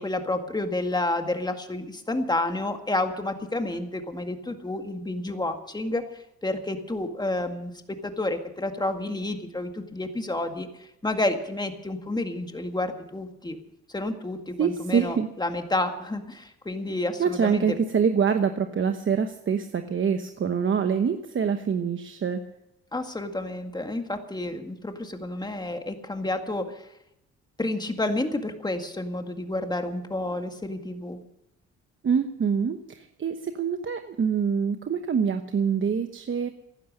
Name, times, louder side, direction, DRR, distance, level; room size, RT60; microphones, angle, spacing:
voice 1, 0.0-6.0 6.4-13.6 13.9-17.8 22.9-26.8 27.6-31.2, left 2 dB, 15° left, 6 dB, 1.9 m, -30 dB
voice 2, 14.6-15.3 17.2-22.4 32.0-36.5, right 6 dB, 40° right, 7 dB, 1.1 m, -25 dB
15.5 x 12.0 x 6.6 m, 0.84 s
cardioid pair, 90°, 30 cm